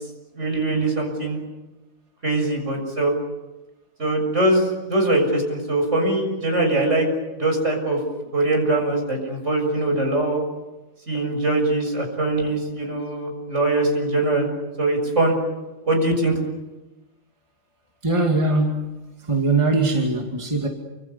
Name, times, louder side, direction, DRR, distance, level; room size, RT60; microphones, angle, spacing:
voice 1, 0.4-1.4 2.2-3.1 4.0-7.1 7.4-8.0 8.3-10.4 11.1-14.5 14.8-15.4 15.8-16.4, right 2 dB, 50° right, 3 dB, 7.2 m, -22 dB
voice 2, 18.0-20.7, right 2 dB, 20° right, 1 dB, 2.5 m, -21 dB
29.0 x 25.5 x 7.0 m, 1.1 s
omnidirectional pair, 1.6 m